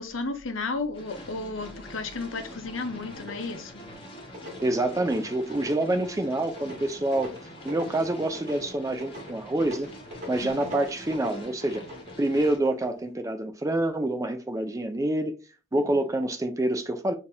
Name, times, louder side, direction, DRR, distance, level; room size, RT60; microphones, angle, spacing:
voice 1, 0.0-3.8 10.4-10.7 15.7-16.0, left 3 dB, 75° left, 0.8 m, -33 dB
sound 1, 0.9-12.6, equal, 25° left, 1.4 m, -44 dB
sound 2, 3.1-3.8 4.1-13.0, left 1 dB, 35° right, 2.0 m, -43 dB
voice 2, 4.6-7.3 7.6-9.9 10.3-11.8 12.2-15.4 15.7-17.1, right 1 dB, 15° right, 0.4 m, -27 dB
6.5 x 2.8 x 2.6 m
head